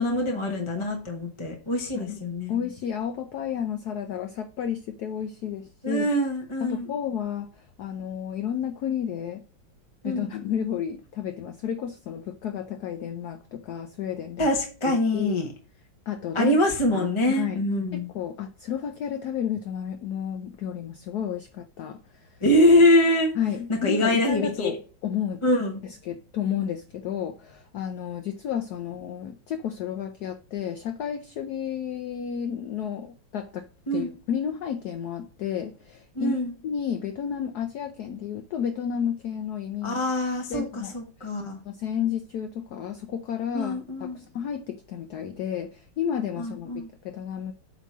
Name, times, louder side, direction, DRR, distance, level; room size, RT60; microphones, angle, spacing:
voice 1, 0.0-2.6 5.8-6.9 10.0-10.3 14.4-15.5 16.3-18.1 22.4-23.3 23.7-24.7 25.4-25.8 33.9-34.1 36.1-36.5 39.8-41.6 43.5-44.2 46.4-46.9, left 1 dB, 20° left, 0.8 m, -24 dB
voice 2, 2.5-6.1 6.6-7.5 7.8-9.4 10.0-14.5 14.9-15.4 16.1-16.6 16.9-17.1 17.4-17.6 17.9-22.4 23.4-24.8 25.0-25.4 25.8-36.4 36.6-40.0 40.5-40.9 41.6-47.5, left 8 dB, 70° left, 1.0 m, -31 dB
8.2 x 2.9 x 6.0 m
omnidirectional pair, 2.2 m